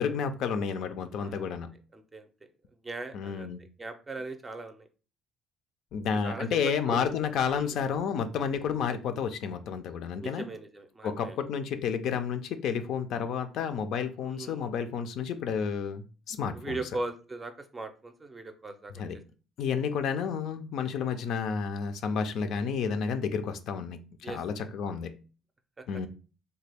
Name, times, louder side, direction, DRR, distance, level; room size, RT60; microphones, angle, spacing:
voice 1, 0.0-1.7 3.1-3.6 5.9-10.5 11.0-16.8 18.9-19.2 19.6-25.1 25.9-26.1, left 6 dB, 70° left, 8 dB, 0.4 m, -31 dB
voice 2, 1.2-1.6 1.9-2.2 2.8-3.5 3.8-4.9 6.2-6.5 6.9-7.0 7.5-7.8 10.2-11.4 14.2-14.7 16.5-19.0 24.2-24.4 25.8-25.9, right 2 dB, 20° right, 8 dB, 0.5 m, -39 dB
3.2 x 2.2 x 3.3 m, 0.35 s
cardioid pair, 110°, 0 cm